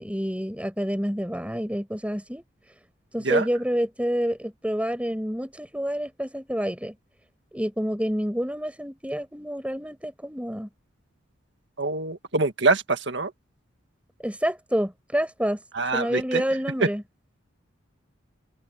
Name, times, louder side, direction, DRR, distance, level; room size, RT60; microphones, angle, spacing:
voice 1, 0.0-2.4 3.1-6.9 7.5-10.7 14.2-15.6 15.9-17.0, equal, 5° right, 6.9 m, -28 dB
voice 2, 11.8-13.3 15.7-16.4 16.8-16.9, right 3 dB, 60° right, 1.9 m, -24 dB
head